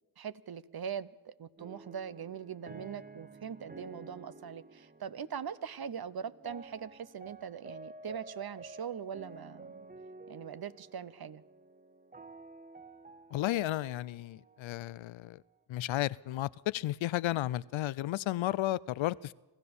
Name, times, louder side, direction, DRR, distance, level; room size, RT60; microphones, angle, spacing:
voice 1, 0.2-9.8 10.3-11.4, right 7 dB, 55° right, 16 dB, 0.9 m, -41 dB
sound 1, 1.6-15.6, right 3 dB, 20° right, 0.9 m, -51 dB
voice 2, 13.3-15.4 15.7-19.3, left 15 dB, 80° left, 21 dB, 0.6 m, -33 dB
25.5 x 15.0 x 7.1 m, 1.1 s
cardioid pair, 50°, 46 cm